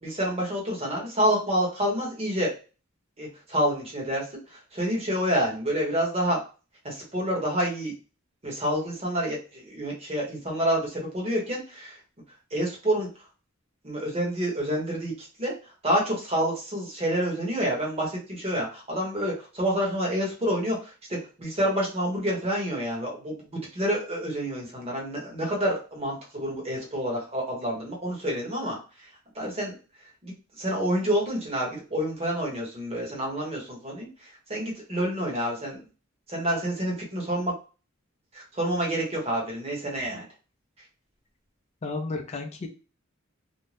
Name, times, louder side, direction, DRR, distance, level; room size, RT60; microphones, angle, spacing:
voice 1, 0.0-2.5 3.2-6.4 6.8-7.9 8.4-12.0 12.5-13.1 13.8-15.5 15.8-29.1 29.3-29.8 30.2-35.8 36.3-37.5 38.3-40.3, equal, 30° right, -2 dB, 1.0 m, -28 dB
voice 2, 41.8-42.7, left 3 dB, 30° left, 4 dB, 0.4 m, -32 dB
2.6 x 2.1 x 3.2 m, 0.34 s
head